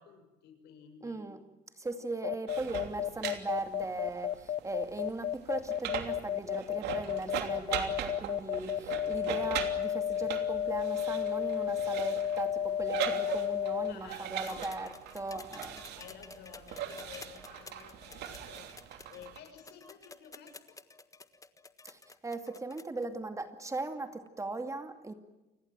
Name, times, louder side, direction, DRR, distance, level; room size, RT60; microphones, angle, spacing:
voice 1, 0.0-1.2 2.6-2.7 13.9-14.7 15.9-18.7 19.1-20.8, left 8 dB, 80° left, 7 dB, 6.8 m, -52 dB
voice 2, 1.0-1.4 1.8-14.9 15.1-15.8 21.8-25.1, right 2 dB, 20° right, 8 dB, 2.4 m, -39 dB
sound 1, 2.2-13.9, left 10 dB, 50° left, 0.9 m, -32 dB
sound 2, 2.5-19.4, right 10 dB, 80° right, 3.0 m, -40 dB
sound 3, 14.4-23.1 24.3-24.4, left 3 dB, 20° left, 1.4 m, -51 dB
29.0 x 21.0 x 7.5 m, 1.1 s
cardioid pair, 110°, 17 cm